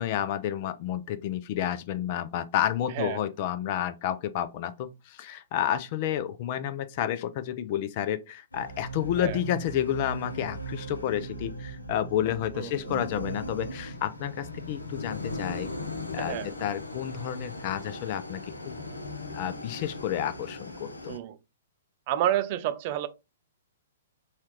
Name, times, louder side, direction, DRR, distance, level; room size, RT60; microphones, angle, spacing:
voice 1, 0.0-15.7 16.1-18.7 19.3-21.2, left 11 dB, 40° left, 0.5 m, -30 dB
voice 2, 2.9-3.2 9.2-9.4 12.5-12.7 16.2-16.5 21.1-21.4 22.1-23.1, right 12 dB, 40° right, 0.5 m, -29 dB
sound 1, 8.5-21.2, equal, 80° left, 0.7 m, -38 dB
4.2 x 2.4 x 3.1 m
figure-of-eight pair, 115°, 0 cm